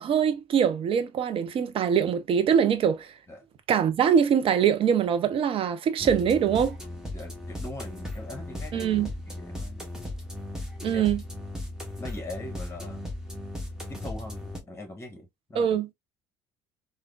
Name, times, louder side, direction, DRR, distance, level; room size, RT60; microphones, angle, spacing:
voice 1, 0.0-3.1 3.7-6.8 8.7-9.1 10.8-11.2 15.6-15.9, right 8 dB, 45° right, 0.6 m, -23 dB
sound 1, 6.0-14.6, left 1 dB, 5° right, 1.2 m, -37 dB
voice 2, 7.1-8.9 9.2-9.9 10.9-11.1 12.0-13.1 13.9-15.8, left 2 dB, 20° left, 1.4 m, -41 dB
3.4 x 2.2 x 2.4 m
hypercardioid pair, 60°, 13 cm